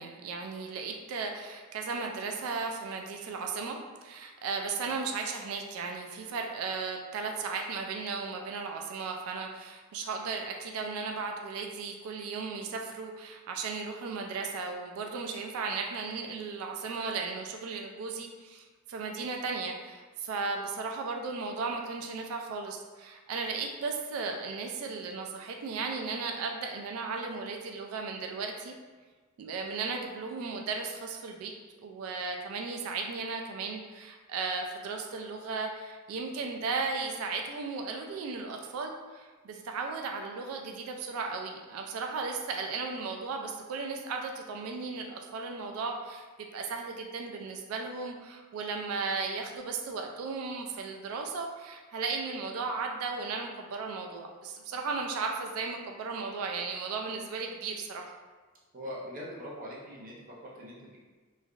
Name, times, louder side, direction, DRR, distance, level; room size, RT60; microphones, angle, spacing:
voice 1, 0.0-28.7 29.4-31.5 31.8-58.0, right 4 dB, 75° right, 4 dB, 0.3 m, -35 dB
voice 2, 58.7-61.0, equal, 40° right, -5 dB, 0.6 m, -42 dB
3.1 x 2.3 x 2.4 m, 1.4 s
head